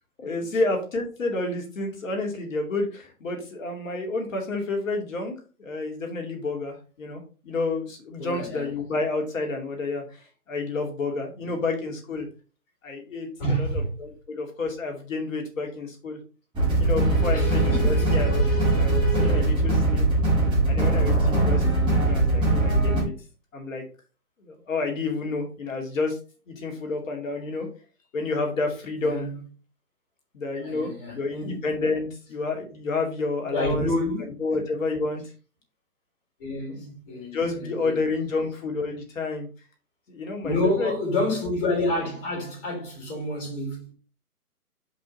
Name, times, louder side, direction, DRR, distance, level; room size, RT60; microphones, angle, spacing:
voice 1, 0.2-5.3 5.6-12.3 12.8-13.7 14.0-16.2 16.8-18.4 18.7-20.1 20.7-23.1 23.5-23.8 24.4-26.2 26.5-27.7 28.1-29.3 30.3-33.9 34.2-35.2 36.7-36.9 37.3-39.5 40.1-40.9, left 3 dB, 55° left, 2.5 m, -30 dB
voice 2, 8.2-8.7 11.4-11.5 13.4-13.9 17.3-18.6 29.0-29.4 30.6-31.7 33.5-34.3 36.4-37.9 40.4-43.9, left 1 dB, 35° left, 4.1 m, -29 dB
sound 1, 16.5-23.0, right 2 dB, 10° right, 2.3 m, -21 dB
5.4 x 5.1 x 4.2 m
hypercardioid pair, 150°, 46 cm